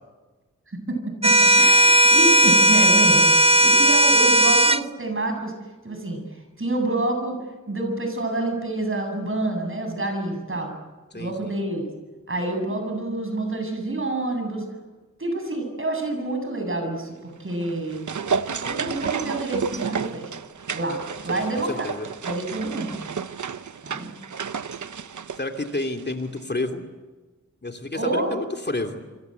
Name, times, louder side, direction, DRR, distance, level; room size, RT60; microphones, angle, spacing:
voice 1, 0.7-5.5 5.8-7.4 7.7-10.7 11.1-11.9 12.3-14.6 15.2-18.0 18.6-20.3 20.7-21.9 22.2-23.0 23.8-24.1 27.9-28.3, right 2 dB, 45° right, 4 dB, 8.0 m, -28 dB
sound 1, 1.2-4.8, right 1 dB, 20° right, 0.8 m, -16 dB
voice 2, 11.1-11.5 21.3-22.1 25.4-26.8 27.6-29.0, left 2 dB, 35° left, 5 dB, 2.8 m, -30 dB
sound 2, 17.5-26.1 26.4-26.5, right 6 dB, 85° right, 1.0 m, -31 dB
27.0 x 25.5 x 8.1 m, 1.2 s
wide cardioid pair, 80°, 29 cm